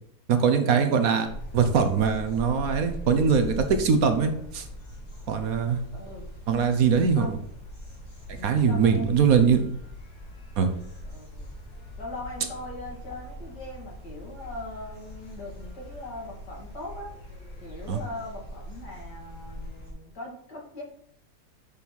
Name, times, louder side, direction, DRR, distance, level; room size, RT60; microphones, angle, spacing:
voice 1, 0.3-1.3 1.5-4.6 5.3-5.8 6.5-7.4 8.4-9.7 10.6-10.7 17.9-18.0, right 6 dB, 65° right, 7 dB, 1.2 m, -22 dB
sound 1, 1.2-19.9, equal, 45° left, 2.8 m, -41 dB
voice 2, 5.9-6.3 7.2-7.4 8.3-9.1 11.0-11.5 12.0-17.1 17.6-20.8, left 2 dB, 85° left, -2 dB, 2.9 m, -40 dB
7.0 x 5.4 x 4.6 m, 0.68 s
omnidirectional pair, 1.7 m